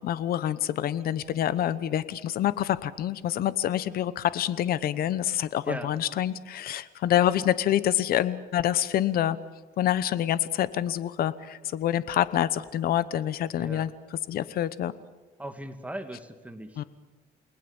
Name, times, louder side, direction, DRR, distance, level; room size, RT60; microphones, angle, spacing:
voice 1, 0.0-9.4 9.8-14.9 16.8-16.9, left 11 dB, 60° left, 16 dB, 1.0 m, -27 dB
voice 2, 13.6-13.9 15.4-16.8, right 1 dB, 10° right, 7 dB, 2.3 m, -38 dB
29.0 x 20.0 x 7.2 m, 1.2 s
cardioid pair, 110°, 17 cm